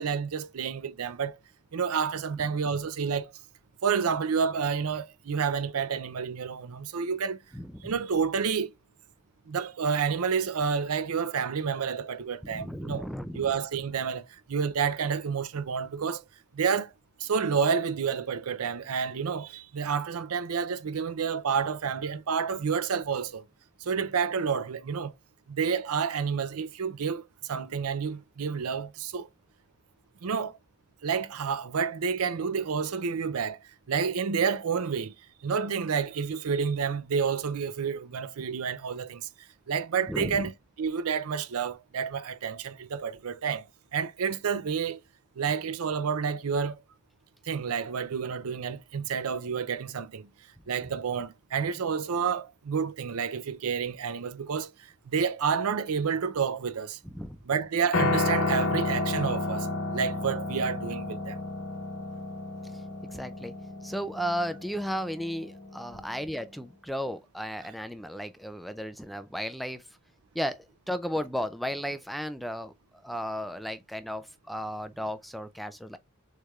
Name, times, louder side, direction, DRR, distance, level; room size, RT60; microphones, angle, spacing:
voice 1, 0.0-1.4 1.7-3.3 3.8-7.4 7.8-8.7 9.5-13.0 13.3-16.2 16.5-16.9 17.2-23.4 23.8-25.1 25.5-29.3 30.2-30.6 31.0-33.6 33.9-35.2 35.4-39.3 39.7-40.5 40.8-43.7 43.9-45.0 45.4-46.8 47.4-50.3 50.7-57.0 57.5-61.4, right 6 dB, 80° right, 0.5 m, -29 dB
voice 2, 7.5-7.9 12.4-13.5 40.1-40.5 57.1-57.4 62.7-62.8 63.1-63.5 63.8-69.8 70.3-76.0, equal, ahead, 0.3 m, -34 dB
Piano, 57.9-66.2, left 2 dB, 75° left, 1.2 m, -31 dB
6.4 x 3.3 x 2.3 m
head